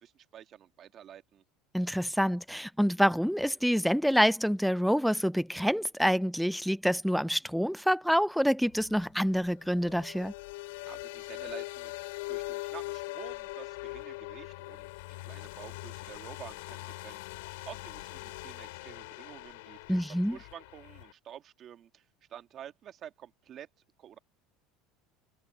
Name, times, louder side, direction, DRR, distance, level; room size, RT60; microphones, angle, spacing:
voice 1, 0.0-1.4 10.9-14.9 15.2-20.0 20.3-22.0 22.3-23.7 24.0-24.2, right 10 dB, 35° right, 1.9 m, -49 dB
voice 2, 1.7-10.3 19.9-20.4, equal, ahead, 0.5 m, -27 dB
sound 1, 8.7-21.1, left 23 dB, 90° left, 3.5 m, -42 dB
cardioid pair, 150°, 0 cm